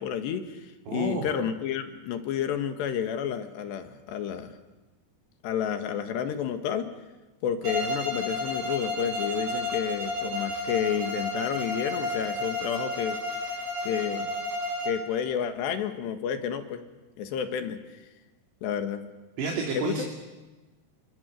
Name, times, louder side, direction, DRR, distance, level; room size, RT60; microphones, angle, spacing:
voice 1, 0.0-4.6 5.4-6.9 7.4-13.2 13.5-14.3 14.8-16.8 17.2-17.8 18.6-19.0 19.7-20.0, left 8 dB, 85° left, 7 dB, 3.9 m, -30 dB
voice 2, 0.9-1.3 19.4-20.0, right 4 dB, 80° right, 0 dB, 4.9 m, -30 dB
Bowed string instrument, 7.6-15.1, left 1 dB, 40° right, 6.2 m, -31 dB
29.5 x 25.0 x 6.6 m, 1.2 s
omnidirectional pair, 4.9 m